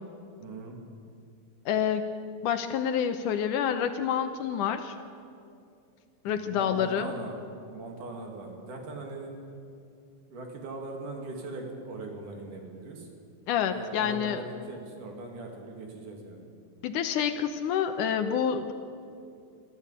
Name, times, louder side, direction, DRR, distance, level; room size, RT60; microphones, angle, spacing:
voice 1, 0.4-0.8 6.3-7.4 7.7-9.3 10.3-13.1 13.7-16.5, right 2 dB, 65° right, 1 dB, 3.9 m, -40 dB
voice 2, 1.7-2.1 2.4-4.9 6.3-7.1 13.5-14.4 16.8-18.7, left 8 dB, 75° left, 8 dB, 2.2 m, -28 dB
24.0 x 14.0 x 8.1 m, 2.5 s
omnidirectional pair, 4.0 m